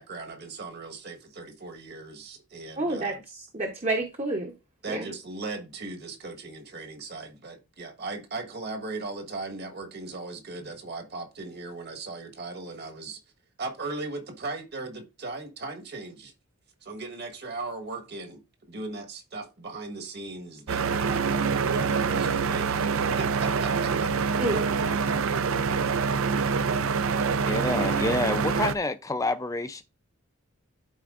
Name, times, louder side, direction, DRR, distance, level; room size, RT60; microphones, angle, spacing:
voice 1, 0.0-3.2 4.8-13.2 13.6-16.3 16.8-18.4 18.7-21.2 21.6-24.1 24.4-24.6, right 3 dB, 45° right, 1.4 m, -38 dB
voice 2, 2.8-4.5 4.9-5.1 24.4-24.7, right 2 dB, 30° right, 0.9 m, -29 dB
sound 1, 20.7-28.7, right 5 dB, 65° right, 0.5 m, -25 dB
voice 3, 27.5-29.8, left 2 dB, 15° left, 0.4 m, -28 dB
12.0 x 4.5 x 2.5 m
head